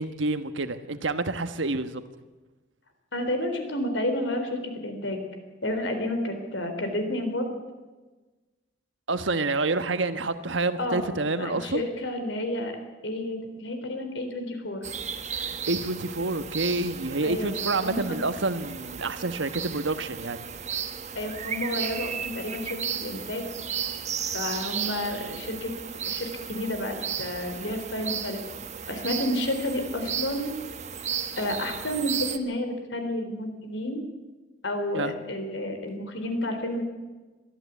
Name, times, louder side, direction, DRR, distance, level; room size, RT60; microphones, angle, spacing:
voice 1, 0.0-2.0 9.1-11.8 15.3-20.4 34.9-35.1, right 2 dB, 90° right, 10 dB, 1.3 m, -28 dB
voice 2, 3.1-5.2 5.6-7.5 10.8-11.0 11.4-12.7 13.0-14.8 17.2-17.5 17.8-18.2 21.2-23.5 24.3-25.7 26.1-28.4 28.9-30.5 31.4-34.0 34.6-36.8, left 1 dB, 80° left, 6 dB, 4.1 m, -30 dB
sound 1, 14.8-32.4, right 8 dB, 35° right, 1.1 m, -34 dB
23.0 x 14.0 x 8.4 m, 1.2 s
head